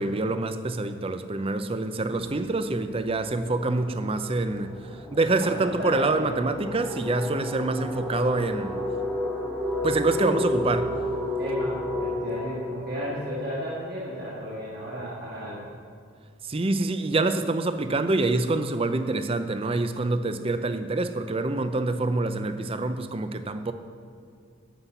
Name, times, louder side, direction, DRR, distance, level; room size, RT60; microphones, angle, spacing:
voice 1, 0.0-8.8 9.8-11.0 16.4-23.7, right 2 dB, 25° right, 10 dB, 0.5 m, -26 dB
sound 1, 2.8-14.3, left 1 dB, ahead, 1.3 m, -32 dB
voice 2, 5.4-6.4 11.4-15.7, equal, 45° right, -7 dB, 1.9 m, -34 dB
11.5 x 5.7 x 8.1 m, 2.2 s
head